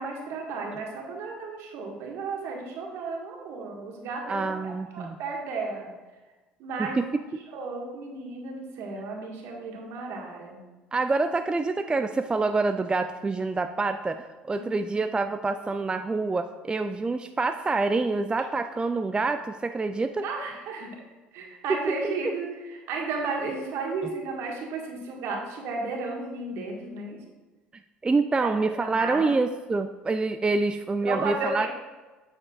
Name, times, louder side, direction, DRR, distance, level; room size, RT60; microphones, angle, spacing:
voice 1, 0.0-5.9 6.6-7.1 7.5-10.6 14.5-14.8 20.2-20.9 21.3-27.2 28.4-28.5 28.8-29.4 31.0-31.7, right 3 dB, 65° right, 0 dB, 1.5 m, -33 dB
voice 2, 4.3-5.2 6.8-7.1 10.9-20.2 21.7-22.0 28.0-31.7, right 3 dB, 20° right, 8 dB, 0.3 m, -26 dB
8.5 x 6.5 x 2.4 m, 1.2 s
hypercardioid pair, 65°, 5 cm